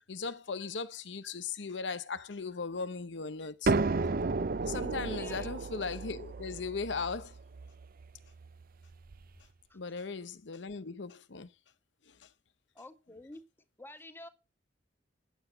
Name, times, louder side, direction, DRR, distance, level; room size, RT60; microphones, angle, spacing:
voice 1, 0.1-3.8 4.6-7.4 9.7-11.5 12.1-12.3, left 4 dB, 70° left, 0.8 m, -38 dB
sound 1, 3.7-9.2, right 3 dB, 50° right, 0.6 m, -33 dB
voice 2, 5.1-5.5 9.7-9.8 12.7-13.4 13.8-14.3, left 1 dB, 10° left, 1.6 m, -49 dB
10.0 x 8.0 x 8.2 m
head